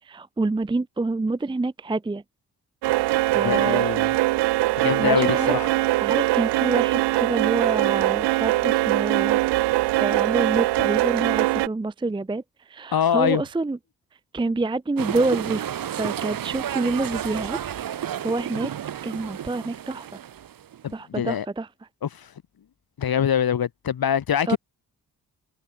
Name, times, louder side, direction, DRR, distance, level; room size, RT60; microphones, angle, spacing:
voice 1, 0.0-2.2 3.3-3.8 4.6-5.5 6.0-9.4 10.0-13.8 14.3-15.7 15.9-17.6 18.0-18.7 19.0-20.2 20.9-21.9 24.5-24.6, right 3 dB, 10° right, 0.6 m, -27 dB
sound 1, 2.8-11.7, right 18 dB, 80° right, 0.5 m, -22 dB
voice 2, 3.3-4.1 4.8-5.7 12.9-13.4 20.8-21.4 22.0-22.3 23.0-24.6, left 9 dB, 60° left, 1.5 m, -24 dB
sound 2, 15.0-20.9, right 10 dB, 55° right, 0.9 m, -31 dB
supercardioid pair, 40°, 40 cm